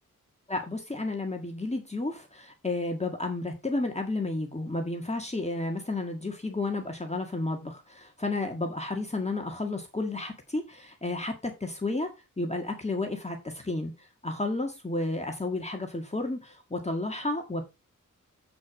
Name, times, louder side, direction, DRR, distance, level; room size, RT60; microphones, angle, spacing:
voice 1, 0.5-12.1 12.4-17.7, left 2 dB, 20° left, 3 dB, 1.7 m, -32 dB
8.0 x 6.2 x 4.9 m, 0.26 s
wide cardioid pair, 95°, 34 cm